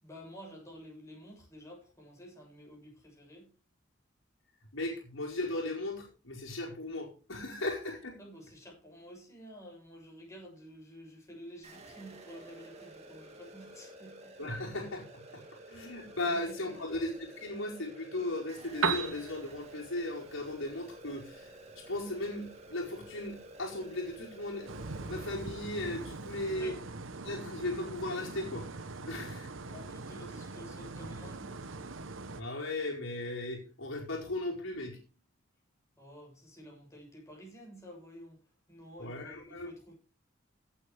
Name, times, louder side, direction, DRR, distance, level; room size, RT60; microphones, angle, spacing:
voice 1, 0.0-3.5 8.2-14.5 16.3-17.0 26.6-26.8 29.6-31.7 36.0-38.4 38.7-39.9, equal, 15° left, 7.0 m, -51 dB
voice 2, 4.7-8.2 14.4-15.0 15.3-15.4 15.7-24.7 25.1-26.7 27.2-28.6 29.1-29.5 32.4-35.0 39.0-39.7, left 2 dB, 70° left, 4.8 m, -37 dB
sound 1, 11.6-25.3, right 1 dB, 35° right, 2.6 m, -51 dB
Piano, 18.6-26.6, right 5 dB, 85° right, 1.6 m, -41 dB
sound 2, 24.7-32.4, right 3 dB, 65° right, 1.0 m, -43 dB
17.0 x 8.8 x 3.5 m
head